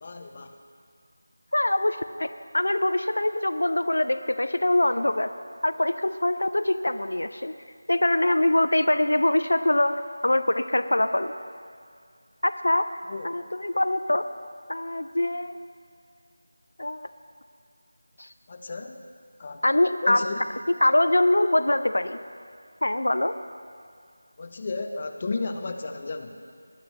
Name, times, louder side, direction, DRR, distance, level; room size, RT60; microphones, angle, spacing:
voice 1, 0.0-0.6 13.1-13.4 18.5-19.0 19.4-20.4 24.4-26.4, left 3 dB, 35° left, 6 dB, 0.7 m, -34 dB
voice 2, 1.5-2.3 2.5-5.3 5.6-7.5 7.9-11.3 12.4-12.9 13.2-14.3 14.7-15.6 16.8-17.1 18.2-18.3 19.6-20.2 20.8-22.2 22.8-23.4, left 1 dB, 70° left, 10 dB, 0.5 m, -23 dB
20.0 x 11.0 x 3.1 m, 2.2 s
figure-of-eight pair, 165°, 0 cm